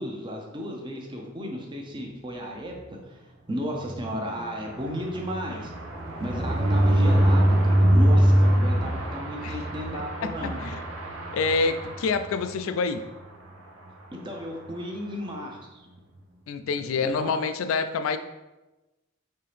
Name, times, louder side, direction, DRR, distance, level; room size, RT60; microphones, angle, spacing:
voice 1, 0.0-5.7 6.2-10.6 14.1-15.8 17.0-17.4, equal, 25° right, 0 dB, 0.6 m, -34 dB
sound 1, 3.8-12.6 13.1-13.2 13.5-13.6 13.9-14.1, equal, 90° right, 0.8 m, -23 dB
voice 2, 10.2-10.8 11.3-13.0 16.5-18.2, left 4 dB, 85° left, 9 dB, 0.3 m, -27 dB
5.5 x 2.8 x 3.3 m, 1.1 s
head